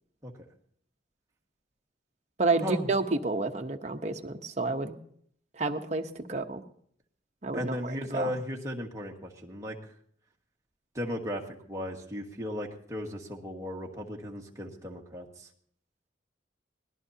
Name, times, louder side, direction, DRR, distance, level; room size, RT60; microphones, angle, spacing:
voice 1, 2.4-5.0 5.5-6.6 7.4-8.3, right 3 dB, 40° right, 4 dB, 0.9 m, -30 dB
voice 2, 7.5-9.8 11.0-15.5, equal, 20° right, -1 dB, 1.7 m, -36 dB
24.0 x 18.0 x 2.8 m, 0.64 s
head